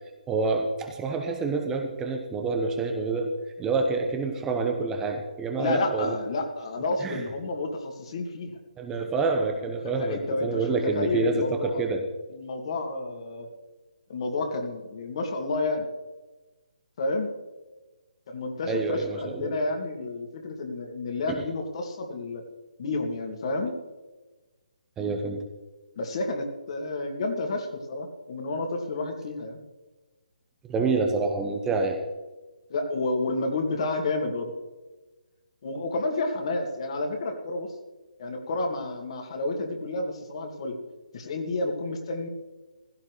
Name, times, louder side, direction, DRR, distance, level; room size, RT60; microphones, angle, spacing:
voice 1, 0.3-6.1 7.0-7.2 8.8-12.1 18.7-19.5 21.3-21.4 25.0-25.4 30.6-32.0, right 4 dB, 10° right, 3 dB, 1.0 m, -27 dB
voice 2, 5.6-8.6 9.8-11.8 12.3-13.5 14.1-15.9 17.0-17.3 18.3-22.4 22.8-23.8 26.0-29.6 32.7-34.5 35.6-37.7 38.2-40.8 41.1-42.3, left 2 dB, 45° left, 3 dB, 2.3 m, -30 dB
16.0 x 15.5 x 3.3 m, 1.2 s
figure-of-eight pair, 140°, 4 cm